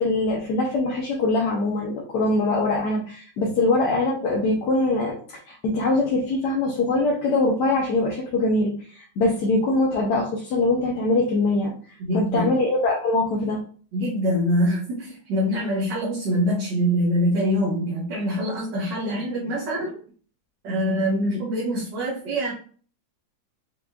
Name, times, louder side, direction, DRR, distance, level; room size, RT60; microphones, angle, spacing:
voice 1, 0.0-5.2 5.5-11.7 12.1-13.6, left 2 dB, 70° left, -2 dB, 1.3 m, -23 dB
voice 2, 12.0-12.5 13.9-20.0 20.6-22.5, equal, 75° right, -7 dB, 1.9 m, -24 dB
6.0 x 2.5 x 2.2 m, 0.43 s
omnidirectional pair, 2.0 m